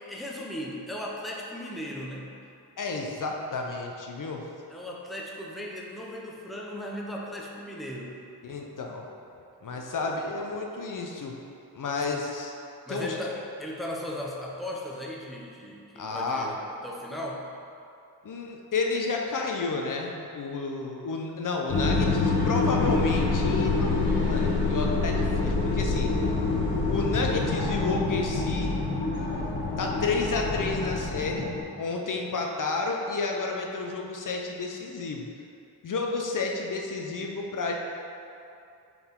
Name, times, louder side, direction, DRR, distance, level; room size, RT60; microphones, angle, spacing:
voice 1, 0.0-2.3 4.7-8.2 9.7-10.1 11.9-12.1 12.9-16.6 16.8-17.5, left 1 dB, ahead, -3 dB, 0.7 m, -37 dB
voice 2, 2.8-4.5 8.4-9.1 9.6-11.3 11.7-12.5 12.9-13.1 16.0-16.5 18.2-26.1 26.9-28.7 29.8-31.5 31.8-35.3 35.8-37.7, left 3 dB, 50° left, 1 dB, 0.7 m, -31 dB
sound 1, 21.7-31.6, left 3 dB, 80° left, 1.4 m, -26 dB
7.0 x 4.0 x 3.7 m, 2.7 s
wide cardioid pair, 100°, 40 cm